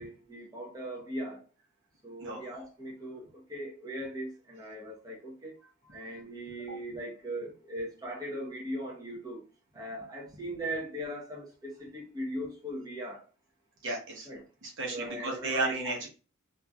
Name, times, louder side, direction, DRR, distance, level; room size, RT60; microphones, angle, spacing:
voice 1, 0.0-1.4 2.0-5.6 5.9-9.4 9.7-13.2 14.3-14.4 14.9-15.8, equal, 15° right, 0.7 m, -39 dB
voice 2, 13.8-14.3 14.6-16.1, right 2 dB, 60° right, 1.0 m, -33 dB
2.9 x 2.5 x 2.3 m
head